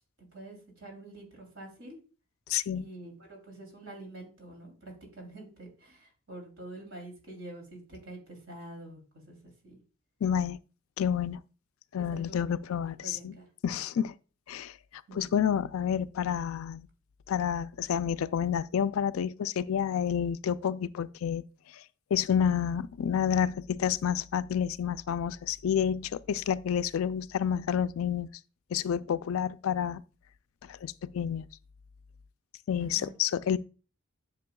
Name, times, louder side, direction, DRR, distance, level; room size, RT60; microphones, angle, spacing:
voice 1, 0.3-2.0 2.7-9.8 12.0-12.4 13.0-13.5 15.1-15.3 32.8-33.1, right 2 dB, 65° right, 3.1 m, -47 dB
voice 2, 2.5-2.9 10.2-10.6 11.0-11.4 11.9-13.3 13.6-14.1 14.5-14.7 15.1-16.9 17.3-21.4 22.1-28.3 28.7-30.0 30.7-31.5 32.7-33.6, left 8 dB, 80° left, 0.4 m, -29 dB
10.5 x 6.8 x 2.3 m
head